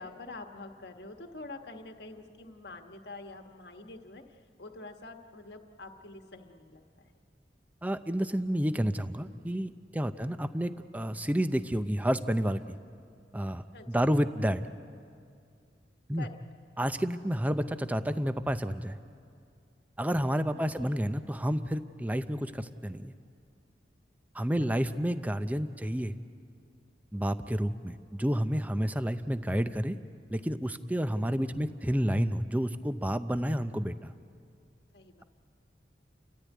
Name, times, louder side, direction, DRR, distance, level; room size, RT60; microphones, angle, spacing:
voice 1, 0.0-7.1 10.0-10.4 13.7-14.1 16.2-16.4 20.5-21.0 34.9-35.2, left 2 dB, 60° left, 5 dB, 1.3 m, -47 dB
voice 2, 7.8-12.8 13.3-14.6 16.1-16.3 16.8-19.0 20.0-23.1 24.3-26.1 27.1-30.0 30.3-34.1, equal, 10° right, 10 dB, 0.5 m, -30 dB
30.0 x 13.5 x 9.3 m, 2.3 s
head